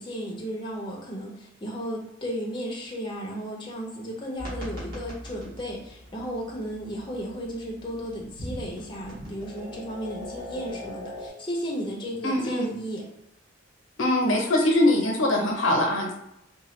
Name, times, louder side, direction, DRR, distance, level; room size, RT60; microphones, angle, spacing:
voice 1, 0.0-13.0, equal, 25° left, -2 dB, 0.6 m, -34 dB
sound 1, 4.4-11.3, left 1 dB, 45° right, 1.5 m, -40 dB
voice 2, 12.2-12.7 14.0-16.1, left 1 dB, 85° left, 1 dB, 0.9 m, -22 dB
3.8 x 2.4 x 3.0 m, 0.81 s
head